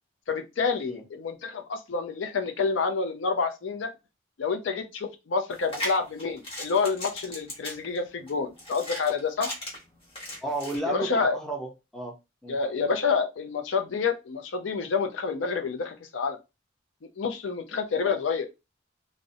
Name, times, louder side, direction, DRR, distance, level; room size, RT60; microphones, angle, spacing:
voice 1, 0.3-3.9 4.4-9.5 10.9-11.4 12.5-16.4 17.2-18.5, left 5 dB, 65° left, 0.5 m, -28 dB
sound 1, 5.5-10.8, left 1 dB, 30° left, 1.1 m, -37 dB
voice 2, 10.4-12.6, right 2 dB, ahead, 0.5 m, -33 dB
2.5 x 2.0 x 2.6 m
head